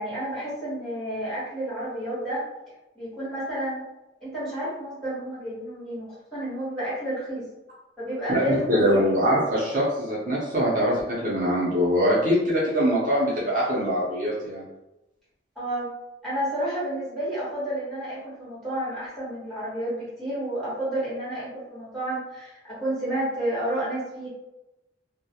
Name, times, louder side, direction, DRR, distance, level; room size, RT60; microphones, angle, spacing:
voice 1, 0.0-2.4 2.9-3.8 4.2-7.4 8.0-9.1 15.5-15.9 16.2-24.3, right 1 dB, ahead, -10 dB, 1.1 m, -30 dB
voice 2, 8.3-14.6, equal, 45° right, -7 dB, 0.6 m, -23 dB
2.3 x 2.0 x 2.7 m, 0.96 s
head